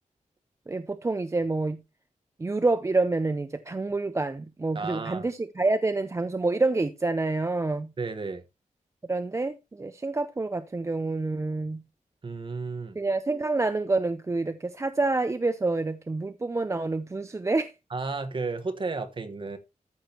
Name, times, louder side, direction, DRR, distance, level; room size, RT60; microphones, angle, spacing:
voice 1, 0.7-1.8 2.4-7.9 9.1-11.8 13.0-17.7, right 3 dB, 20° right, 0.5 m, -27 dB
voice 2, 4.7-5.3 8.0-8.4 12.2-13.0 17.9-19.6, right 3 dB, 40° right, 1.3 m, -33 dB
14.0 x 6.3 x 2.9 m
wide cardioid pair, 170°, 13 cm